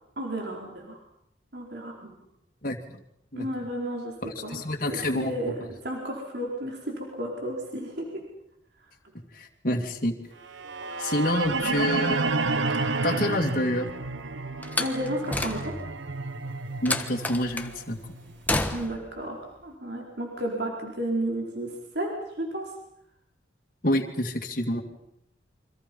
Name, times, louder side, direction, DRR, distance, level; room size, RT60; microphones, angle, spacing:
voice 1, 0.2-1.0 1.5-2.1 3.4-4.1 4.4-4.6 4.9-8.0 14.8-15.7 18.7-19.4 19.6-22.7, right 1 dB, 60° right, -1 dB, 4.7 m, -32 dB
voice 2, 4.2-5.5 9.3-10.1 11.0-12.3 13.0-13.9 16.8-18.0 23.8-24.8, left 1 dB, 45° left, 0 dB, 2.6 m, -27 dB
sound 1, 10.5-18.6, right 3 dB, 85° right, 1.3 m, -30 dB
Slam, 14.6-16.0 16.9-17.7 18.5-19.1, left 2 dB, 10° left, 1.3 m, -30 dB
29.0 x 25.0 x 5.6 m, 0.78 s
head